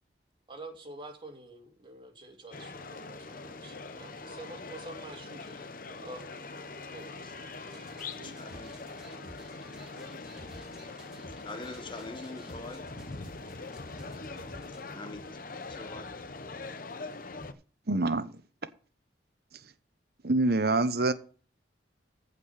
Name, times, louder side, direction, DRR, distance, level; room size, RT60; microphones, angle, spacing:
voice 1, 0.5-6.2 6.9-7.3, right 2 dB, 25° right, 2.5 m, -47 dB
sound 1, 2.5-17.5, left 3 dB, 50° left, 0.9 m, -43 dB
sound 2, 7.5-14.9, equal, 5° right, 3.1 m, -52 dB
voice 2, 8.2-8.7 11.4-12.8 14.9-15.2 15.8-16.0, left 2 dB, 25° left, 1.5 m, -42 dB
voice 3, 17.9-18.3 20.2-21.1, right 2 dB, 55° right, 1.0 m, -26 dB
15.0 x 5.3 x 5.7 m
head